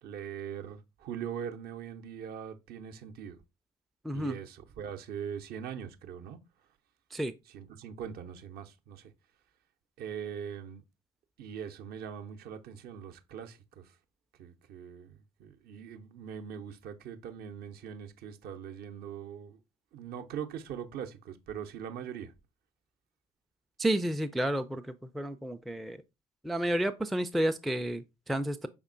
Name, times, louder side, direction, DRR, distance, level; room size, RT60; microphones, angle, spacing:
voice 1, 0.0-3.4 4.1-6.4 7.5-9.1 10.0-10.8 11.4-14.0 14.4-19.6 19.9-22.3, right 8 dB, 55° right, 0.6 m, -41 dB
voice 2, 4.0-4.4 7.1-7.3 23.8-26.0 26.4-28.7, right 1 dB, ahead, 0.3 m, -31 dB
5.2 x 3.6 x 2.5 m
figure-of-eight pair, 50°, 19 cm